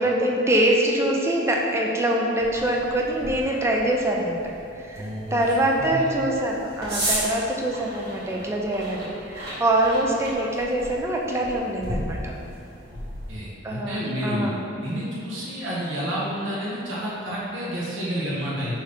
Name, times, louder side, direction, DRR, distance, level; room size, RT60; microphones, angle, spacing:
voice 1, 0.0-12.4 13.6-14.6, right 1 dB, 15° right, -1 dB, 0.3 m, -24 dB
sound 1, 2.4-13.4, right 1 dB, 50° right, 1.2 m, -35 dB
voice 2, 4.9-5.4 5.8-6.2 12.9-13.0 13.3-14.5 14.8-18.8, equal, 70° right, -7 dB, 0.8 m, -30 dB
5.1 x 2.7 x 3.3 m, 2.7 s
head